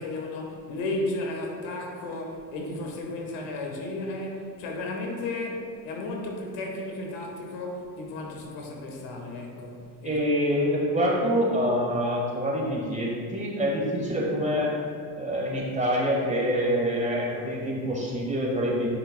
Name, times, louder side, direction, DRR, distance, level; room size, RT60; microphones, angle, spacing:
voice 1, 0.0-10.1, left 2 dB, 75° left, 0 dB, 1.4 m, -34 dB
voice 2, 10.0-14.7 15.2-18.9, equal, 15° right, -3 dB, 1.7 m, -26 dB
9.5 x 6.2 x 2.3 m, 2.2 s
supercardioid pair, 80°, 48 cm